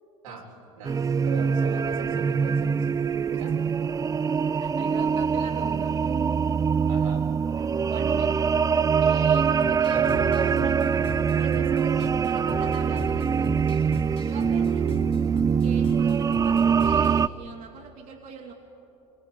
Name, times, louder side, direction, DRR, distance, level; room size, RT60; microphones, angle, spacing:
voice 1, 0.2-3.0 3.4-3.5 6.9-7.3 9.9-10.7, right 5 dB, 80° right, 0 dB, 4.1 m, -39 dB
sound 1, 0.8-17.3, right 6 dB, 20° right, 0.4 m, -23 dB
voice 2, 4.5-6.2 7.6-8.4 9.0-10.1 10.4-10.8 11.3-13.8 14.1-15.0 15.6-18.5, right 5 dB, 50° right, -1 dB, 2.7 m, -41 dB
sound 2, 9.6-17.3, left 3 dB, 30° left, 3.1 m, -40 dB
26.0 x 25.5 x 5.3 m, 2.7 s
hypercardioid pair, 75°, 17 cm